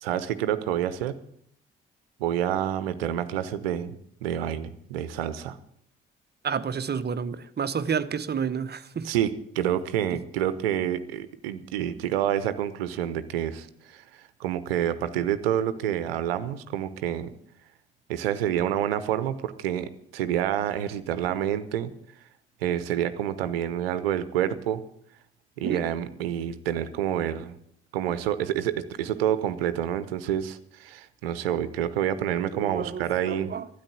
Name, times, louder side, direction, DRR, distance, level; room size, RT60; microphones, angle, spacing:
voice 1, 0.0-1.2 2.2-4.0 4.2-5.6 9.0-14.0 14.4-17.3 18.1-21.9 22.6-24.8 25.6-27.6 27.9-33.5, right 10 dB, 75° right, 0.9 m, -28 dB
voice 2, 6.4-9.1 10.1-10.2 25.6-25.8 32.5-33.7, right 6 dB, 35° right, 1.0 m, -30 dB
13.0 x 9.3 x 9.5 m
figure-of-eight pair, 45°, 30 cm